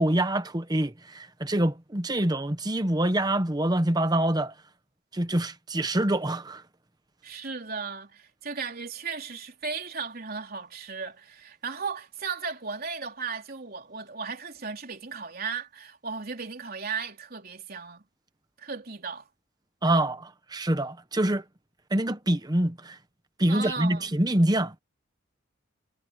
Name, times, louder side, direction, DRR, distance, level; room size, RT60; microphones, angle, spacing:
voice 1, 0.0-4.5 5.1-6.6 19.8-21.4 21.9-23.0 23.4-24.7, right 1 dB, 20° right, 1.0 m, -25 dB
voice 2, 7.2-18.0 18.6-19.3 23.5-24.1, right 5 dB, 45° right, 3.8 m, -36 dB
head